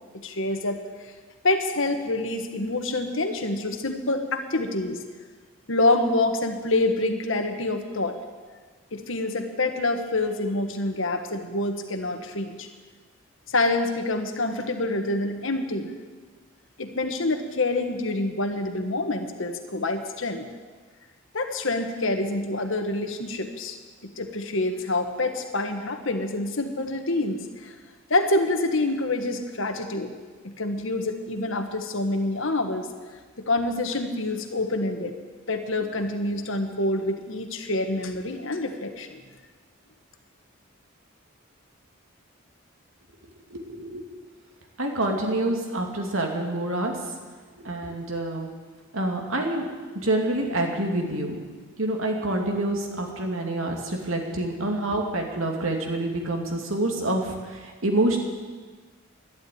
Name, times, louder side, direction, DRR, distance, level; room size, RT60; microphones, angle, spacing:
voice 1, 0.2-0.8 1.4-5.0 5.7-8.2 8.9-12.7 13.5-15.9 16.8-20.4 21.3-23.8 24.0-27.7 28.1-30.1 30.4-32.9 33.4-35.1 35.5-39.2, left 2 dB, 70° left, 6 dB, 1.5 m, -26 dB
voice 2, 43.5-44.0 44.8-47.0 47.6-48.5 48.9-51.4 51.8-58.2, right 1 dB, 80° right, 2 dB, 2.6 m, -27 dB
11.5 x 11.5 x 9.4 m, 1.4 s
head